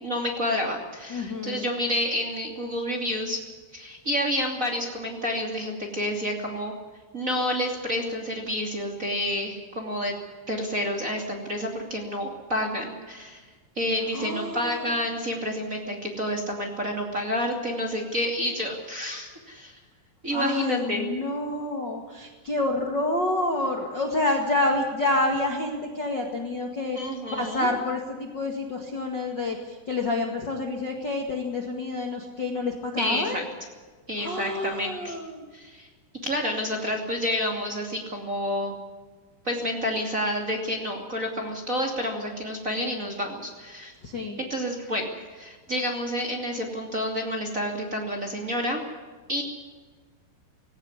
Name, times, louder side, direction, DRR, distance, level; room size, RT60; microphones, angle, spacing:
voice 1, 0.0-3.4 3.7-6.8 7.1-10.1 10.5-13.4 13.8-19.7 20.2-21.1 26.9-27.7 33.0-33.4 34.1-35.2 35.5-35.9 36.2-38.7 39.4-43.9 44.5-48.8 49.3-49.4, equal, 25° right, 1 dB, 1.9 m, -29 dB
voice 2, 1.1-1.7 14.1-14.9 20.3-27.0 27.4-33.4 34.2-35.4 44.0-44.4, left 2 dB, 75° left, 2 dB, 1.0 m, -28 dB
19.0 x 17.5 x 9.7 m, 1.4 s
omnidirectional pair, 5.7 m